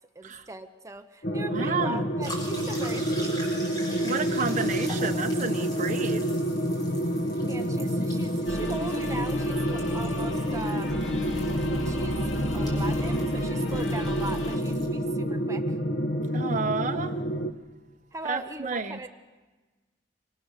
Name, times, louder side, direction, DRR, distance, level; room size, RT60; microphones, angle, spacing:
voice 1, 0.1-3.4 7.5-11.0 11.7-15.8 18.1-19.1, right 2 dB, 15° right, 7 dB, 1.0 m, -39 dB
sound 1, 1.2-17.5, equal, 65° left, 1.2 m, -28 dB
voice 2, 1.4-2.0 4.0-6.3 16.3-17.2 18.2-19.0, right 4 dB, 45° right, 5 dB, 1.3 m, -31 dB
sound 2, 2.2-14.9, equal, 25° left, 6.2 m, -43 dB
sound 3, 8.5-14.6, equal, 85° left, 3.2 m, -37 dB
25.5 x 24.0 x 6.7 m, 1.3 s
head